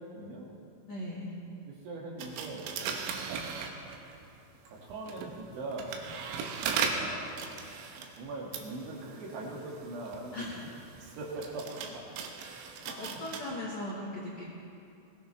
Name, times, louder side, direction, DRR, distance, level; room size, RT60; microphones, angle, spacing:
voice 1, 0.1-0.5 1.7-2.7 4.7-5.9 6.9-7.6 8.2-10.5 11.0-12.0 12.8-13.2 13.5-13.6, right 2 dB, 70° right, -3 dB, 4.4 m, -41 dB
voice 2, 0.9-1.3 10.3-10.6 12.8-14.4, left 1 dB, 60° left, -6 dB, 1.8 m, -38 dB
sound 1, 2.2-4.3 4.9-13.4, right 6 dB, 85° right, 3.8 m, -38 dB
21.5 x 16.5 x 3.4 m, 2.6 s
omnidirectional pair, 6.0 m